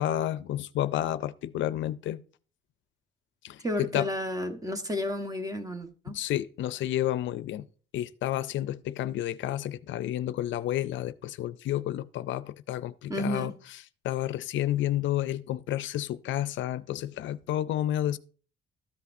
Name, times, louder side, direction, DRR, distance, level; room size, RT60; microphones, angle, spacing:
voice 1, 0.0-2.2 3.4-4.1 6.1-7.7 7.9-13.5 14.0-18.2, left 12 dB, 75° left, 0.4 m, -30 dB
voice 2, 3.6-6.2 13.1-13.5, left 1 dB, 15° right, 1.2 m, -32 dB
13.5 x 5.7 x 2.7 m
cardioid pair, 90°, 20 cm